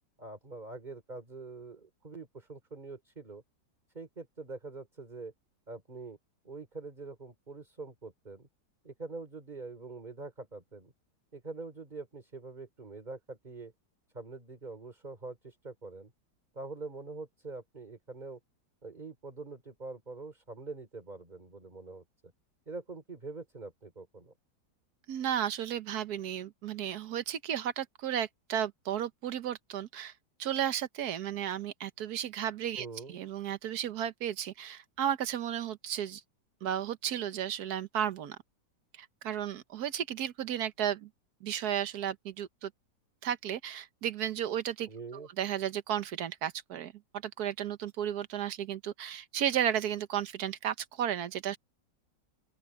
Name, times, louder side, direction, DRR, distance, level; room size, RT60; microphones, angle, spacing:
voice 1, 0.2-3.4 3.9-5.3 5.7-6.2 6.4-8.5 8.8-10.9 11.3-13.7 14.1-16.1 16.5-18.4 18.8-22.0 22.7-24.3 32.7-33.2 44.9-45.3, right 3 dB, 25° right, 3.4 m, -44 dB
voice 2, 25.1-30.1 30.4-36.2 36.6-38.4 39.0-41.1 41.4-42.7 43.2-51.6, right 10 dB, 65° right, 1.4 m, -34 dB
open air
omnidirectional pair, 1.9 m